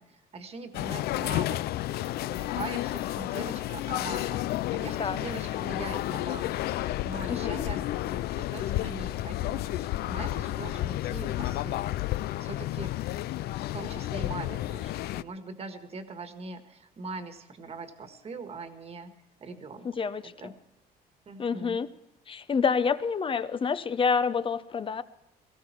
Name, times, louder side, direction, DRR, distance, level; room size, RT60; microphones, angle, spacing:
voice 1, 0.0-1.6 2.2-4.4 4.7-11.9 12.4-12.9 13.7-19.1 19.4-19.9 20.2-20.5 21.2-21.8, right 3 dB, 35° right, 8 dB, 1.6 m, -41 dB
sound 1, 0.7-15.2, left 15 dB, 70° left, 0.4 m, -31 dB
voice 2, 7.3-7.6 19.8-20.5 21.4-21.9 22.3-25.0, left 5 dB, 30° left, 13 dB, 0.7 m, -28 dB
18.0 x 15.0 x 4.5 m, 0.88 s
cardioid pair, 110°, 17 cm